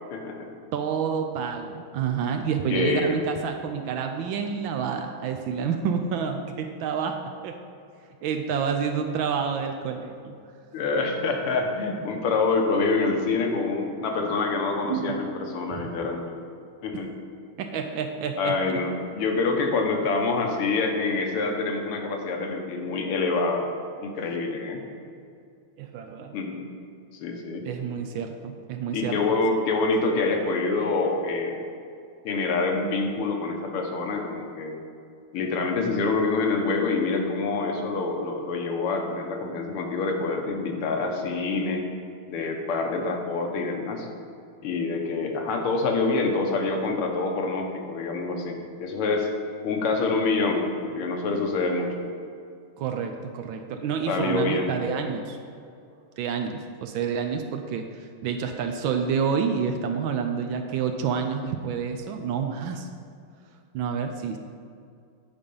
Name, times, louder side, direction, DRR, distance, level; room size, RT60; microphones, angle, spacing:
voice 1, 0.1-0.5 2.7-3.2 10.7-16.3 16.8-17.1 18.4-23.7 24.0-24.8 26.3-26.6 27.2-27.7 28.1-28.2 28.9-31.6 32.3-34.8 35.3-41.8 42.3-44.1 44.6-49.3 49.6-51.9 54.1-54.7, left 3 dB, 85° left, 3 dB, 1.9 m, -26 dB
voice 2, 0.7-7.2 7.4-7.6 8.2-10.4 14.9-15.3 15.7-15.9 16.9-17.0 17.6-18.6 25.8-26.3 27.6-29.4 52.8-55.4 56.2-62.9 63.7-64.4, right 6 dB, 75° right, 5 dB, 1.2 m, -28 dB
9.9 x 5.2 x 5.4 m, 2.4 s
omnidirectional pair, 2.4 m